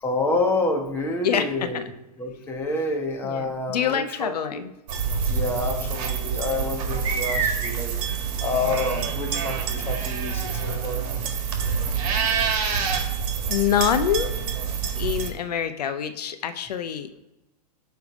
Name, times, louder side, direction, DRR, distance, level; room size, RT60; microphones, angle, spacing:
voice 1, 0.0-1.8 2.2-4.6 5.3-11.1 12.8-13.0, left 2 dB, 10° left, 1 dB, 1.1 m, -28 dB
voice 2, 1.2-1.8 3.2-4.7 13.5-14.3 15.0-17.1, left 9 dB, 75° left, 9 dB, 0.6 m, -26 dB
sound 1, 4.9-15.3, right 6 dB, 50° right, 1.6 m, -26 dB
9.6 x 3.4 x 5.1 m, 0.96 s
hypercardioid pair, 130°, 20 cm